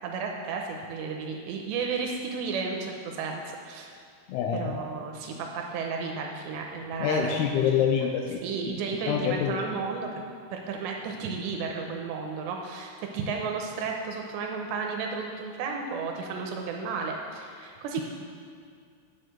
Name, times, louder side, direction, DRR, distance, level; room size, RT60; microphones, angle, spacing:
voice 1, 0.0-3.9 4.5-7.4 7.6-7.8 8.4-10.1 10.5-18.0, right 5 dB, 80° right, 1 dB, 3.0 m, -33 dB
voice 2, 4.3-4.7 7.0-8.8 9.1-9.6, left 7 dB, 80° left, 3 dB, 2.4 m, -26 dB
9.9 x 6.6 x 7.7 m, 2.2 s
omnidirectional pair, 5.1 m